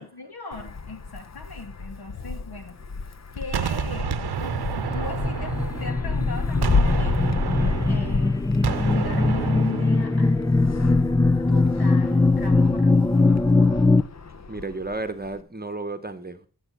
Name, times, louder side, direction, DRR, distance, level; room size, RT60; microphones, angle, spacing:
voice 1, 0.0-2.8 3.3-7.2 7.8-8.4 8.8-10.6 11.5-13.3, left 3 dB, 65° left, 2.5 m, -38 dB
Wind, 0.5-15.4, left 4 dB, 40° left, 0.9 m, -31 dB
Gunshot gunfire, 3.5-6.2 6.6-10.2, right 8 dB, 70° right, 0.9 m, -30 dB
sound 1, 4.2-14.0, left 3 dB, 10° left, 0.4 m, -21 dB
voice 2, 14.5-16.5, right 2 dB, 25° right, 1.0 m, -32 dB
11.0 x 6.4 x 5.9 m
cardioid pair, 50°, 40 cm